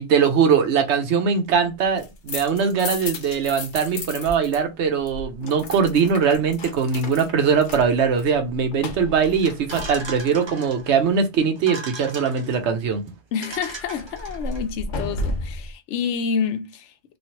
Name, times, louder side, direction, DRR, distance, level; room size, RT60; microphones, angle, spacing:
voice 1, 0.0-13.0, right 6 dB, 80° right, 1.0 m, -21 dB
sound 1, 1.8-4.6 4.8-10.4 13.5-15.7, left 2 dB, 55° left, 0.7 m, -34 dB
sound 2, 9.7-11.0 11.6-12.6 13.1-13.2 13.4-14.6, right 3 dB, 35° right, 0.5 m, -37 dB
voice 2, 13.3-16.9, left 6 dB, 85° left, 0.9 m, -28 dB
3.1 x 2.4 x 2.8 m
omnidirectional pair, 1.2 m